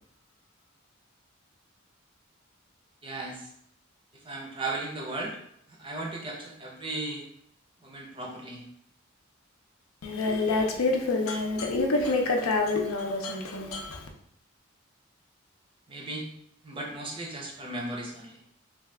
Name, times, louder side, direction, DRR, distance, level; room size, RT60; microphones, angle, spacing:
voice 1, 3.0-3.5 4.1-5.4 5.7-7.2 7.8-8.6 15.9-16.3 16.6-18.4, right 2 dB, 25° right, 0.5 m, -36 dB
voice 2, 10.0-14.1, left 3 dB, 90° left, 0.5 m, -27 dB
2.6 x 2.3 x 3.2 m
head